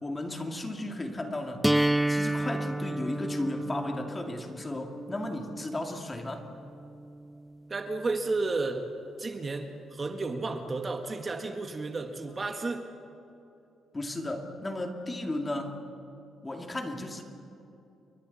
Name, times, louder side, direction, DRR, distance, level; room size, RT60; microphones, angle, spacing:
voice 1, 0.0-1.6 2.1-6.5 13.9-15.8 16.4-17.2, left 1 dB, 20° left, 3 dB, 2.5 m, -35 dB
sound 1, 1.6-7.6, right 1 dB, 5° right, 0.5 m, -31 dB
voice 2, 7.7-8.8 9.2-12.8, right 3 dB, 30° right, 5 dB, 1.6 m, -32 dB
29.5 x 23.0 x 4.3 m, 2.8 s
cardioid pair, 90°, 0 cm